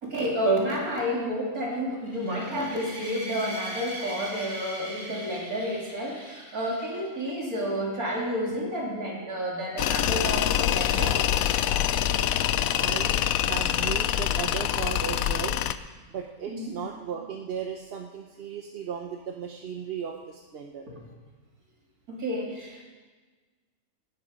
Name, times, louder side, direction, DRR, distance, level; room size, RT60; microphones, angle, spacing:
voice 1, 0.0-11.2 16.5-16.7 20.9-21.0 22.1-22.8, equal, 85° right, -2 dB, 3.4 m, -30 dB
sound 1, 2.0-7.3, right 1 dB, 15° left, 2.9 m, -40 dB
Tools, 9.8-15.8, left 11 dB, 75° left, 1.0 m, -25 dB
voice 2, 12.8-20.9, right 7 dB, 50° right, 3 dB, 0.9 m, -36 dB
18.0 x 9.4 x 5.1 m, 1.4 s
omnidirectional pair, 1.5 m